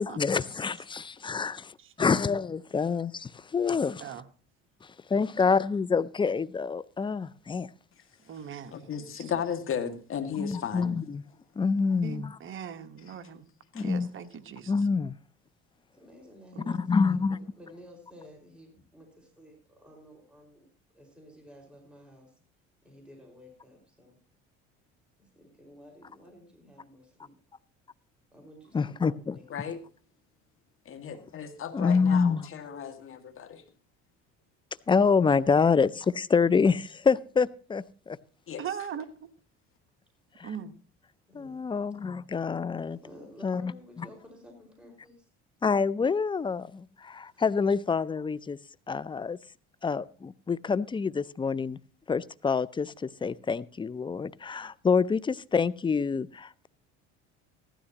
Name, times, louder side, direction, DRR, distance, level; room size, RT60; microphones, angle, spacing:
voice 1, 0.0-1.6 2.0-4.0 4.8-7.7 10.4-11.2 11.6-12.4 13.7-14.1 14.7-15.1 16.7-17.4 28.7-29.4 31.7-32.5 34.9-38.2 40.4-40.5 41.3-43.0 43.4-43.7 44.0-44.1 45.6-48.6 48.9-49.4 49.8-51.8 52.1-56.7, left 5 dB, 15° left, 0.5 m, -27 dB
voice 2, 1.8-2.2 4.0-4.2 8.2-8.8 9.1-9.3 12.0-13.4 13.8-14.7 16.5-16.8 38.6-39.3 40.4-40.7, right 7 dB, 40° right, 1.3 m, -40 dB
voice 3, 8.7-11.0 13.7-13.9 29.5-29.8 30.9-33.6 38.5-38.6, left 7 dB, 45° left, 2.0 m, -35 dB
voice 4, 15.9-20.7 20.9-22.3 22.8-24.2 25.2-27.3 28.3-29.5 41.3-41.6 42.9-45.3 47.3-47.4, equal, 5° right, 5.1 m, -52 dB
15.0 x 13.0 x 2.9 m
supercardioid pair, 90°, 30 cm